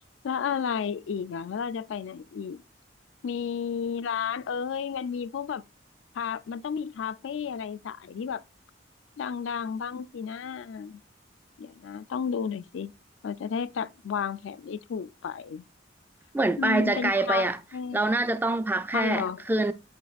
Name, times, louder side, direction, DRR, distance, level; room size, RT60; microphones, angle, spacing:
voice 1, 0.2-2.6 3.2-5.6 6.1-8.4 9.2-11.0 11.6-12.9 13.2-15.6 16.6-18.0 18.9-19.4, left 7 dB, 85° left, 0.4 m, -32 dB
voice 2, 16.3-17.6 17.9-19.7, right 2 dB, 10° right, 0.3 m, -25 dB
9.1 x 5.1 x 2.3 m
head